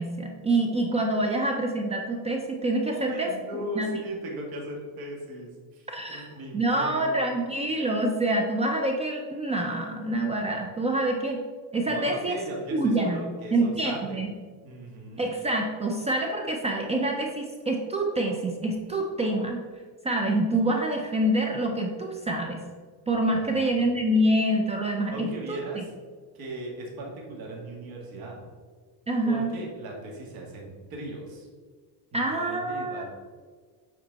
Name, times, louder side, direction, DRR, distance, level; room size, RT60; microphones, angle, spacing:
voice 1, 0.0-3.3 3.8-3.9 5.9-11.4 11.7-12.4 12.7-13.2 13.5-14.3 15.2-19.6 20.0-22.6 23.1-25.8 29.1-29.6 32.1-33.0, right 1 dB, 15° right, 2 dB, 0.3 m, -26 dB
voice 2, 2.9-7.2 11.8-14.2 14.6-15.3 23.1-23.9 25.1-25.8 26.3-28.4 29.2-31.5 32.1-33.0, right 1 dB, 55° right, -1 dB, 2.0 m, -38 dB
7.9 x 4.5 x 4.0 m, 1.5 s
cardioid pair, 155°, 42 cm